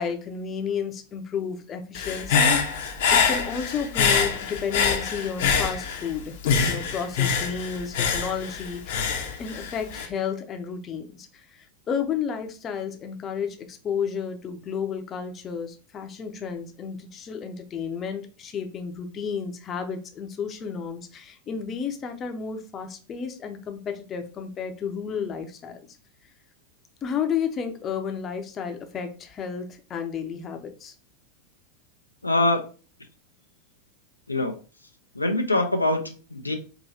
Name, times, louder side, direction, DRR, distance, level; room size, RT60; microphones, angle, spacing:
voice 1, 0.0-2.6 3.1-6.4 6.6-9.1 9.4-25.8 27.0-30.9, left 6 dB, 25° left, 5 dB, 0.7 m, -32 dB
Human voice / Breathing, 1.9-6.1 6.4-10.1, left 6 dB, 55° left, 0.8 m, -24 dB
voice 2, 32.2-32.6 34.3-34.5 35.1-36.6, left 2 dB, 80° left, 6 dB, 0.5 m, -24 dB
4.8 x 2.7 x 2.7 m, 0.36 s
figure-of-eight pair, 90°, 0 cm